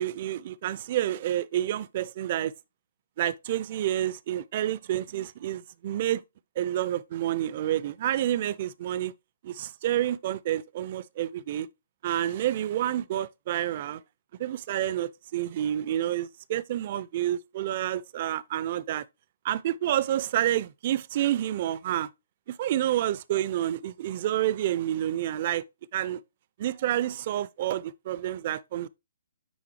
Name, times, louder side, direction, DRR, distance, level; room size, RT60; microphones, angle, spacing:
voice 1, 0.0-2.5 3.2-6.2 6.6-9.1 9.4-11.7 12.0-14.0 14.4-19.0 19.4-22.1 22.5-25.6 25.9-26.2 26.6-28.9, right 12 dB, 40° right, 0.4 m, -29 dB
9.1 x 3.7 x 3.0 m
figure-of-eight pair, 135°, 0 cm